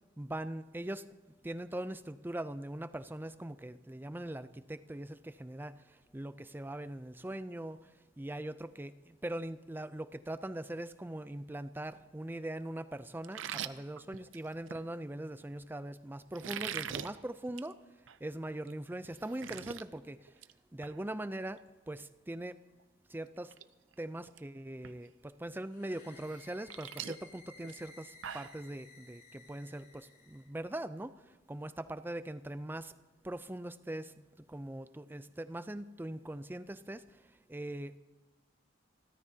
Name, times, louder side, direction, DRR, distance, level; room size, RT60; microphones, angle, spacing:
voice 1, 0.2-1.1 1.4-17.9 18.2-20.4 20.7-22.6 23.1-23.6 24.0-32.9 33.2-38.0, right 1 dB, 10° right, 0.4 m, -41 dB
sound 1, 13.2-14.8 16.3-17.1 17.5-17.7 18.1-18.2 18.7-18.8 19.0-19.8 20.2-20.5 20.8-21.0 22.8-22.9 23.4-23.6 23.9-24.4 24.8-24.9 26.3-28.6, right 9 dB, 85° right, 0.6 m, -42 dB
sound 2, 25.7-30.5, left 3 dB, 45° left, 4.6 m, -57 dB
27.5 x 13.5 x 2.8 m
head